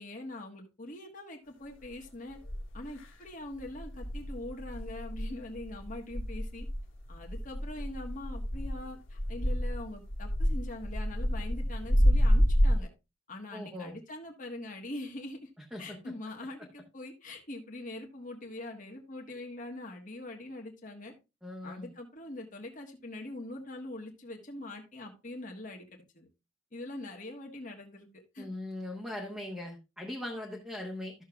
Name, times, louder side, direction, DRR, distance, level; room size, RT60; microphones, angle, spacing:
voice 1, 0.0-2.4 2.7-6.7 7.1-12.9 13.3-15.5 15.8-21.1 21.6-26.3 26.7-28.1 28.3-28.5, left 2 dB, 40° left, 1 dB, 1.4 m, -43 dB
sound 1, 1.8-1.9 2.4-3.1 3.5-12.8, equal, 75° left, 1.7 m, -29 dB
voice 2, 13.5-14.0 15.7-16.0 21.4-21.9 28.4-31.1, left 1 dB, 5° right, -2 dB, 1.1 m, -40 dB
13.5 x 6.4 x 2.3 m, 0.26 s
head